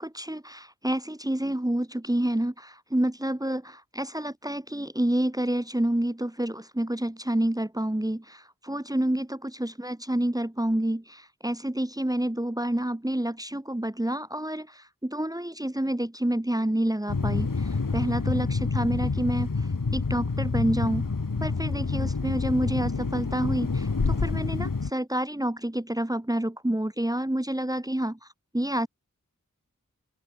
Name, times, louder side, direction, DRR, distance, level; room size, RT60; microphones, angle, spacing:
voice 1, 0.0-19.5 19.9-21.1 21.4-28.2 28.5-28.9, right 1 dB, 10° right, 1.2 m, -28 dB
sound 1, 17.1-24.9, left 4 dB, 85° left, 2.8 m, -28 dB
open air
wide cardioid pair, 50°, 32 cm